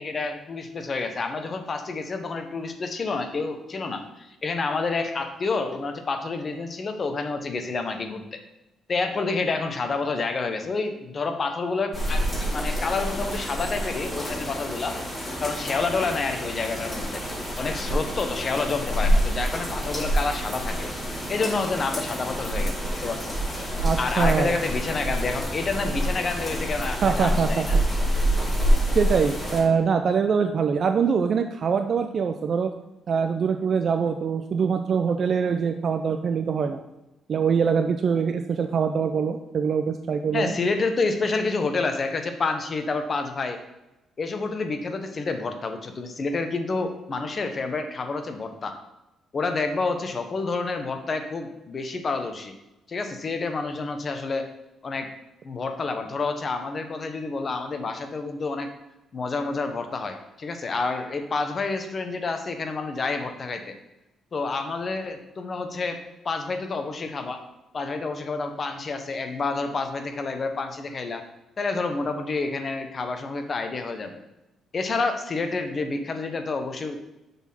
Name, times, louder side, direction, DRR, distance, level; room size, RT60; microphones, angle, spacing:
voice 1, 0.0-8.4 8.9-15.0 15.4-17.2 17.6-20.9 21.3-23.3 24.0-27.8 40.3-43.6 44.2-48.8 49.3-52.5 52.9-54.5 54.8-55.1 55.4-58.7 59.1-63.8 64.3-66.0 66.2-67.4 67.7-71.2 71.6-74.2 74.7-77.1, left 3 dB, 40° left, 7 dB, 1.0 m, -29 dB
sound 1, 11.9-29.6, equal, 15° left, 2.6 m, -27 dB
voice 2, 23.8-24.6 27.0-27.7 28.9-32.7 33.1-36.8 37.3-40.5, right 6 dB, 50° right, 7 dB, 0.4 m, -23 dB
7.0 x 4.2 x 5.7 m, 0.97 s
cardioid pair, 90°, 0 cm